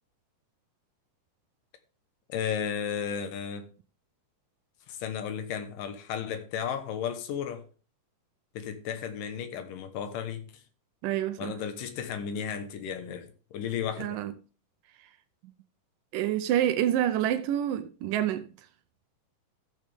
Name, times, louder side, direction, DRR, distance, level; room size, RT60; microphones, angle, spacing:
voice 1, 2.3-3.7 4.9-7.6 8.5-10.6 11.4-14.2, left 8 dB, 80° left, 2.8 m, -34 dB
voice 2, 11.0-11.5 14.0-14.3 16.1-18.5, right 11 dB, 85° right, 2.3 m, -27 dB
14.0 x 7.4 x 3.5 m
omnidirectional pair, 3.8 m